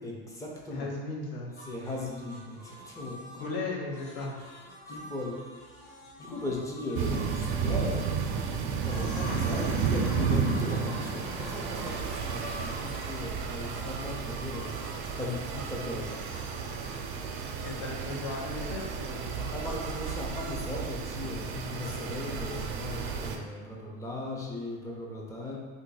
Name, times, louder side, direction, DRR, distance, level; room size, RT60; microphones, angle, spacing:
voice 1, 0.0-0.9 1.4-3.5 4.9-5.5 6.2-8.3 8.8-14.8 15.2-16.2 19.5-25.5, left 2 dB, 10° left, -3 dB, 0.5 m, -37 dB
voice 2, 0.7-1.5 3.4-4.4 17.6-19.5, left 2 dB, 80° left, -2 dB, 0.9 m, -36 dB
sound 1, 1.6-7.8 8.9-9.7 10.0-15.3 16.2-17.0, left 1 dB, 55° left, 1.1 m, -47 dB
sound 2, 7.0-23.4, right 6 dB, 90° right, 0.5 m, -32 dB
sound 3, 9.2-14.7, left 1 dB, 30° left, 0.9 m, -47 dB
2.7 x 2.5 x 3.8 m, 1.5 s
cardioid pair, 145°, 30 cm